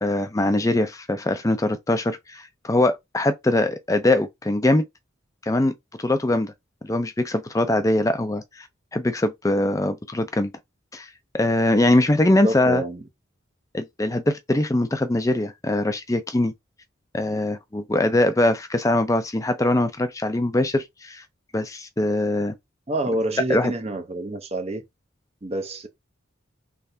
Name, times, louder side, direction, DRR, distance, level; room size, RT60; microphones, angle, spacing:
voice 1, 0.0-4.8 5.4-5.7 6.0-6.5 6.8-8.7 8.9-10.5 10.9-11.1 11.3-12.8 13.7-16.5 17.1-21.2 21.5-22.5 23.5-23.7, left 1 dB, 15° left, 0.5 m, -22 dB
voice 2, 12.4-13.0 22.9-24.8 25.4-25.9, right 2 dB, 30° right, 0.6 m, -27 dB
3.4 x 3.3 x 2.7 m
head